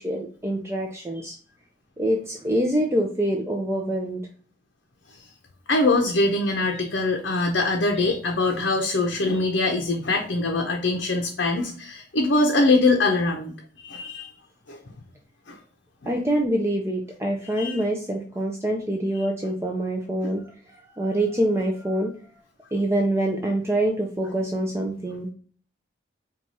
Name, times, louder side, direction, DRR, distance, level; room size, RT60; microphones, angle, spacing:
voice 1, 0.0-1.3 2.0-4.2 16.1-20.4 21.0-22.1 22.7-25.3, right 1 dB, 15° right, 1 dB, 0.5 m, -25 dB
voice 2, 5.7-13.5 13.8-14.3 14.7-14.8 15.5-15.6 16.0-16.1 17.5-17.8 20.2-20.3, left 2 dB, 70° left, 2 dB, 0.7 m, -23 dB
4.5 x 2.4 x 4.0 m, 0.43 s
head